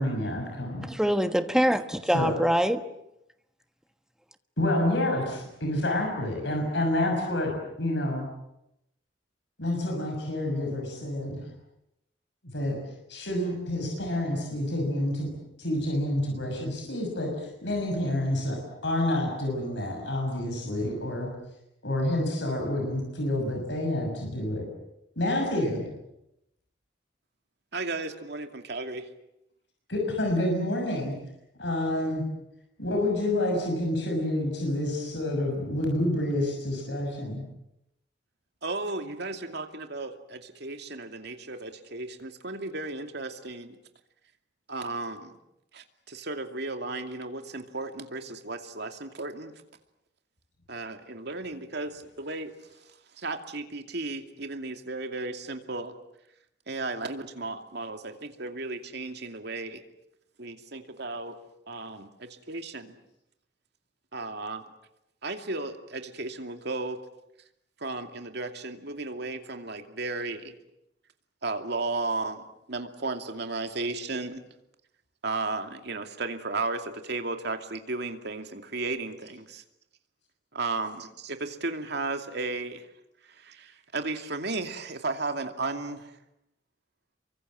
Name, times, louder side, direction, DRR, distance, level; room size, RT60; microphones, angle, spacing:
voice 1, 0.0-0.9 2.1-2.4 4.6-8.2 9.6-11.4 12.4-12.8 13.1-15.3 15.6-21.3 21.8-24.7 25.2-25.8 29.9-31.2 31.6-32.2 32.8-37.4, left 1 dB, 70° left, 6.4 m, -28 dB
voice 2, 0.8-2.9, equal, 5° right, 1.3 m, -24 dB
voice 3, 27.7-29.1 38.6-43.8 44.7-45.3 45.7-49.5 50.7-52.5 53.2-55.9 56.7-59.8 60.4-61.4 61.7-62.9 64.1-64.6 65.2-67.0 67.8-70.5 71.4-74.4 75.2-79.6 80.5-82.8 83.4-86.1, right 3 dB, 65° right, 2.6 m, -34 dB
28.5 x 24.0 x 7.7 m
head